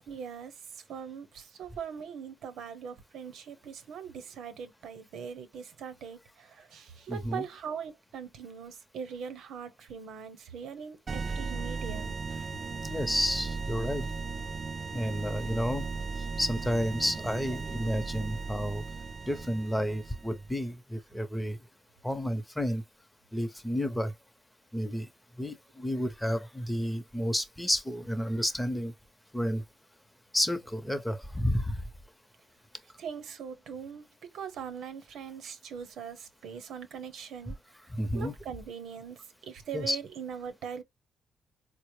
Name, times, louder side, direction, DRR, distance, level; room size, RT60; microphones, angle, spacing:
voice 1, 0.1-0.5 0.9-6.2 6.6-12.2 33.0-37.6 38.1-39.2 39.4-40.8, right 7 dB, 75° right, 0.8 m, -41 dB
voice 2, 7.1-7.5 12.8-14.1 14.9-15.9 16.4-18.8 19.3-21.6 22.0-22.8 23.3-24.1 24.7-25.1 25.4-28.9 29.3-29.6 30.3-31.9 37.9-38.3 39.7-40.0, equal, 5° left, 0.7 m, -31 dB
sound 1, 11.1-20.5, right 4 dB, 40° right, 0.4 m, -36 dB
4.2 x 2.0 x 3.1 m
cardioid pair, 90°, 0 cm